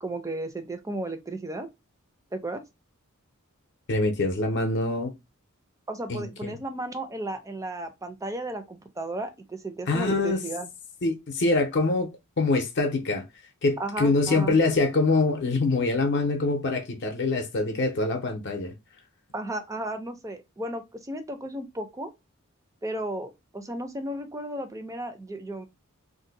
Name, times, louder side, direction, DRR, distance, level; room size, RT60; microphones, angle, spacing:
voice 1, 0.0-1.7 2.3-2.6 5.9-10.7 13.8-14.6 19.3-22.1 22.8-25.7, right 1 dB, 15° right, 0.4 m, -34 dB
voice 2, 3.9-5.1 6.1-6.5 9.9-10.4 11.0-12.1 12.4-13.3 13.6-18.7, left 3 dB, 55° left, 0.6 m, -24 dB
2.6 x 2.1 x 3.9 m
head